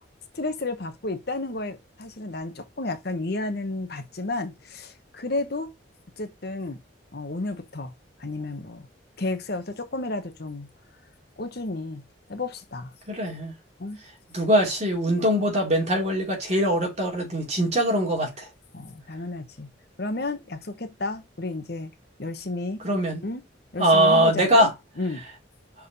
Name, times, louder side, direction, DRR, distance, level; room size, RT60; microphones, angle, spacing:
voice 1, 0.3-5.7 6.2-6.8 7.1-7.9 8.2-8.9 9.2-10.7 11.4-12.0 12.3-12.9 13.8-14.0 18.7-19.7 20.0-21.9 22.2-22.8 23.2-23.4 23.7-24.7 25.0-25.2, left 2 dB, 55° left, 1.0 m, -32 dB
voice 2, 13.1-13.5 14.3-18.5 22.8-23.2 23.8-24.7, right 1 dB, 35° right, 2.8 m, -22 dB
5.5 x 4.6 x 4.0 m
head